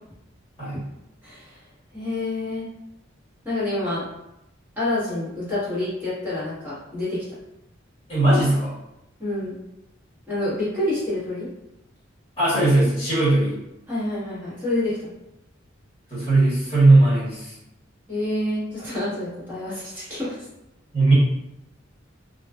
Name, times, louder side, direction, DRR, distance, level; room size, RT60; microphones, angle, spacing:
voice 1, 1.2-1.6 1.9-2.7 3.4-4.0 4.8-7.2 9.2-9.6 10.3-11.5 13.9-15.0 18.1-20.4, left 1 dB, 10° right, -11 dB, 1.2 m, -27 dB
voice 2, 8.1-8.7 12.4-13.5 16.1-17.5 20.9-21.1, right 2 dB, 30° left, -11 dB, 1.2 m, -18 dB
2.3 x 2.3 x 2.3 m, 0.86 s
head